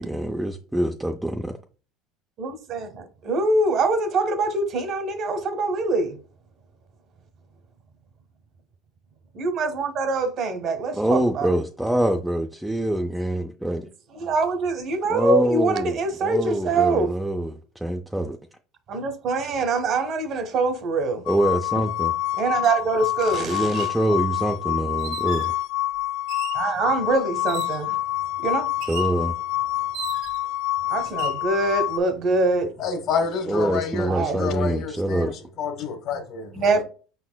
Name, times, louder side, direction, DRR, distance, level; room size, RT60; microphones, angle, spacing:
voice 1, 0.0-1.5 11.0-13.9 15.1-18.4 21.3-22.1 23.4-25.5 28.9-29.3 33.5-35.3, right 1 dB, 5° right, 0.4 m, -25 dB
voice 2, 2.4-6.2 9.3-11.5 14.1-17.1 18.9-21.2 22.4-23.9 26.5-28.0 28.4-28.7 30.9-32.7 34.1-34.4 36.5-36.8, right 3 dB, 40° right, 0.9 m, -24 dB
sound 1, 21.3-32.0, left 15 dB, 90° left, 0.3 m, -27 dB
sound 2, 22.6-22.7 23.6-24.0 25.0-25.6 26.3-26.7 27.5-27.9 28.8-29.2 29.9-30.5 31.1-31.4, right 10 dB, 75° right, 1.7 m, -37 dB
voice 3, 32.8-36.8, left 5 dB, 55° left, 1.1 m, -29 dB
5.3 x 4.0 x 2.2 m
cardioid pair, 140°, 0 cm